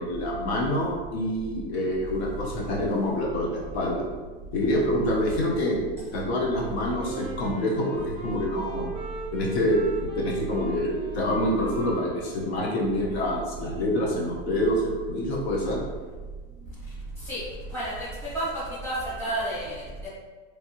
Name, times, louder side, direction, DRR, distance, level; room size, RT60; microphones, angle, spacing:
voice 1, 0.0-4.0 4.5-5.8 6.1-8.9 9.3-15.8, left 1 dB, 75° left, -2 dB, 0.9 m, -26 dB
Wind instrument woodwind instrument, 6.6-13.2, right 2 dB, 15° right, 0.4 m, -39 dB
voice 2, 17.7-18.1 18.3-19.7 20.0-20.1, right 1 dB, 5° left, -12 dB, 1.2 m, -30 dB
3.2 x 2.7 x 2.8 m, 1.4 s
supercardioid pair, 170°, 32 cm